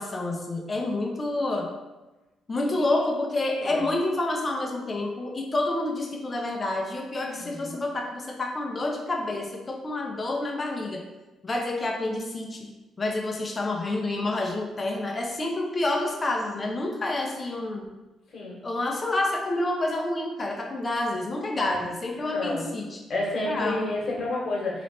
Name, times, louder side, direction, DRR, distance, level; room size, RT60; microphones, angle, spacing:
voice 1, 0.0-1.7 2.5-11.1 11.4-12.7 13.0-17.8 18.6-23.0 23.5-23.8, left 2 dB, 30° left, 1 dB, 0.7 m, -28 dB
voice 2, 7.2-7.7 18.3-18.6 21.6-21.7 22.2-22.7 23.1-24.8, left 2 dB, 55° left, -3 dB, 1.4 m, -31 dB
3.1 x 3.1 x 4.2 m, 1.1 s
cardioid pair, 90°, 0 cm